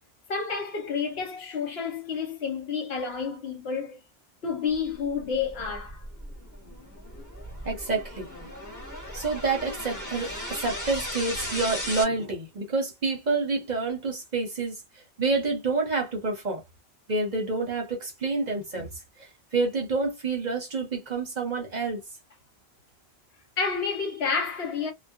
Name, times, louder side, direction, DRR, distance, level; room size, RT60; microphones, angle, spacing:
voice 1, 0.3-4.0 4.4-6.0 23.6-24.9, left 5 dB, 70° left, 1.1 m, -30 dB
sound 1, 5.1-12.0, left 1 dB, 15° left, 1.2 m, -37 dB
voice 2, 7.7-8.3 9.1-14.8 15.2-16.6 17.1-18.9 19.2-22.0, right 3 dB, 45° right, 0.7 m, -28 dB
2.3 x 2.0 x 2.6 m
omnidirectional pair, 1.1 m